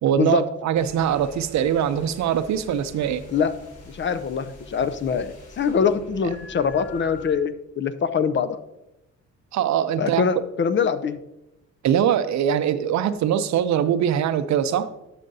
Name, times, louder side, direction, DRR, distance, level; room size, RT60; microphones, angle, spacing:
voice 1, 0.0-3.2 9.5-10.3 11.8-14.9, right 9 dB, 65° right, 12 dB, 0.6 m, -22 dB
sound 1, 0.7-7.4, left 2 dB, 55° left, 1.7 m, -45 dB
voice 2, 3.9-8.6 10.0-11.2, left 6 dB, 40° left, 12 dB, 0.5 m, -23 dB
11.0 x 6.6 x 2.7 m, 0.91 s
cardioid pair, 90°, 30 cm